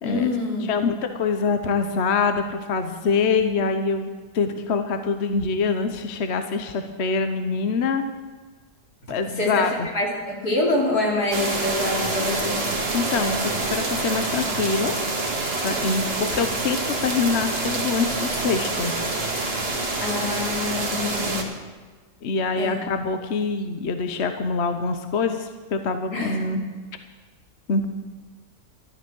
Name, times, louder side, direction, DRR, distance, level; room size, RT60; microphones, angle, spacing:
voice 1, 0.0-0.7 9.0-12.6 20.0-21.5 22.6-22.8 26.1-26.4, left 2 dB, 75° left, -2 dB, 3.6 m, -26 dB
voice 2, 0.7-8.1 9.1-9.7 12.9-14.9 15.6-18.9 22.2-26.6 27.7-27.9, left 4 dB, 50° left, 7 dB, 1.1 m, -25 dB
sound 1, 11.3-21.4, right 2 dB, 40° right, 2.0 m, -26 dB
13.0 x 12.0 x 6.2 m, 1.3 s
omnidirectional pair, 1.7 m